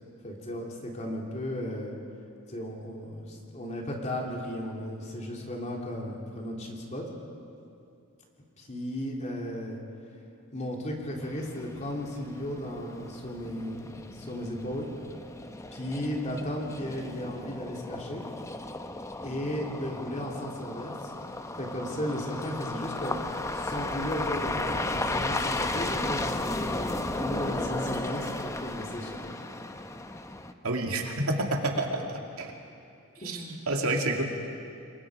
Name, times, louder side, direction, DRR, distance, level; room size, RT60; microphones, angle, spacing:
voice 1, 0.2-2.0 2.5-7.0 8.6-9.8 10.5-14.9 15.7-18.2 19.2-21.1 21.6-23.2 23.5-29.3 31.7-32.1 33.2-33.6, left 1 dB, 30° left, -1 dB, 3.1 m, -35 dB
sound 1, 11.2-30.5, left 2 dB, 15° left, 0.7 m, -35 dB
voice 2, 30.6-32.5 33.2-33.4 33.7-34.2, right 2 dB, 80° right, 1 dB, 2.4 m, -29 dB
28.0 x 22.0 x 5.0 m, 2.5 s
head